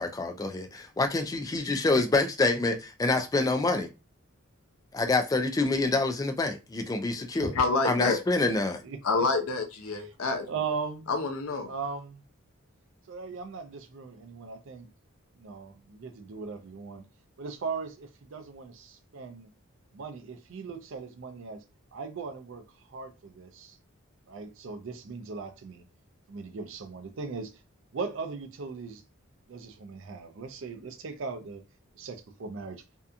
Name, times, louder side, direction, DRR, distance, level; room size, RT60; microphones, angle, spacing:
voice 1, 0.0-3.9 4.9-7.5 7.8-8.8, left 2 dB, 15° left, 0.3 m, -27 dB
voice 2, 7.5-8.2 9.0-10.5 11.1-11.7, left 3 dB, 85° left, 0.6 m, -27 dB
voice 3, 8.8-9.2 9.9-10.1 10.5-11.1 11.7-12.2 13.1-14.9 15.3-17.0 17.4-19.5 19.9-21.6 21.9-23.8 24.3-25.8 26.3-27.6 27.9-29.0 29.5-31.6 31.9-32.8, right 5 dB, 65° right, 0.4 m, -39 dB
2.7 x 2.3 x 2.4 m
head